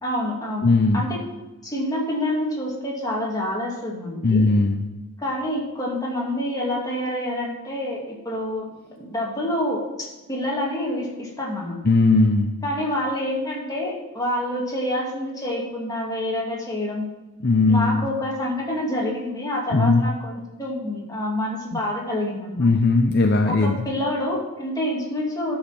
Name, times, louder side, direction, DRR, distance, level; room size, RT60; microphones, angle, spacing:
voice 1, 0.0-1.2 1.6-4.5 5.2-8.7 9.0-11.8 12.6-17.1 17.6-22.7 23.4-25.6, left 1 dB, 15° left, -3 dB, 2.6 m, -27 dB
voice 2, 0.6-1.0 4.2-4.8 11.9-12.5 17.4-18.1 19.7-20.0 22.6-23.7, left 3 dB, 45° left, 4 dB, 0.6 m, -18 dB
11.5 x 6.5 x 6.0 m, 1.1 s
head